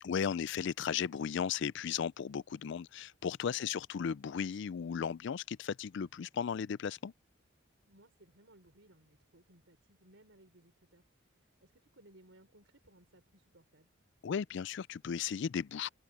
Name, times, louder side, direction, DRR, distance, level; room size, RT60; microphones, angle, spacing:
voice 1, 0.0-7.1 14.2-15.9, left 7 dB, 60° left, 0.4 m, -35 dB
voice 2, 3.5-3.9 7.9-13.9, right 1 dB, 70° right, 4.8 m, -63 dB
head